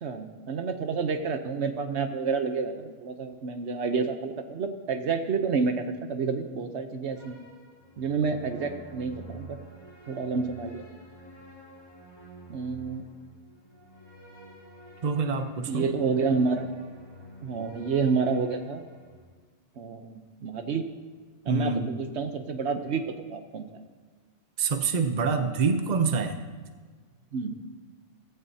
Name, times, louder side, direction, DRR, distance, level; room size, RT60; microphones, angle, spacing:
voice 1, 0.0-7.4 8.0-9.6 10.1-10.8 12.5-13.1 15.7-16.7 17.4-18.9 19.8-20.8 21.4-23.8 27.3-27.6, right 5 dB, 70° right, 7 dB, 1.1 m, -29 dB
sound 1, 7.2-19.3, right 2 dB, 20° left, 2.3 m, -49 dB
voice 2, 15.0-15.9 21.5-21.9 24.6-26.4, right 4 dB, 40° right, 7 dB, 0.9 m, -26 dB
16.0 x 14.5 x 2.8 m, 1.5 s
omnidirectional pair, 1.2 m